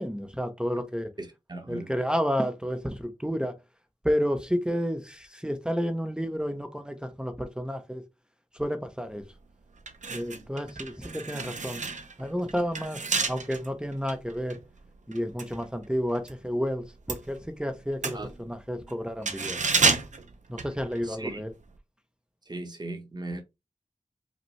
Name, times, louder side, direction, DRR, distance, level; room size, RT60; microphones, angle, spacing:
voice 1, 0.0-1.1 1.7-3.6 4.0-8.0 8.5-9.2 10.1-11.8 12.2-13.0 13.3-14.6 15.1-19.6 20.5-21.5, equal, 5° right, 0.6 m, -31 dB
voice 2, 1.2-1.9 18.1-18.3 21.1-21.4 22.5-23.4, right 2 dB, 35° right, 1.0 m, -37 dB
sound 1, 9.2-9.3 9.8-16.4 16.7-21.3 21.6-21.8, right 4 dB, 80° right, 0.6 m, -31 dB
5.1 x 2.2 x 3.1 m
wide cardioid pair, 60°, 12 cm